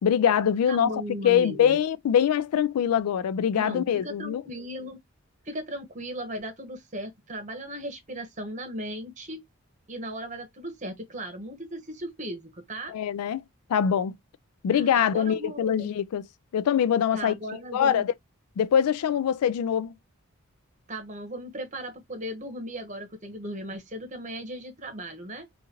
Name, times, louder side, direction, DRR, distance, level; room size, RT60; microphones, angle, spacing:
voice 1, 0.0-4.4 12.9-13.4 13.7-14.2 14.6-16.2 16.5-17.3 17.7-18.1 18.6-19.9, left 8 dB, 85° left, 0.3 m, -23 dB
voice 2, 0.7-1.8 3.5-5.0 5.4-9.4 9.9-12.9 14.7-15.9 17.1-18.0 20.9-25.5, right 1 dB, 35° right, 1.0 m, -37 dB
3.8 x 2.5 x 2.9 m
head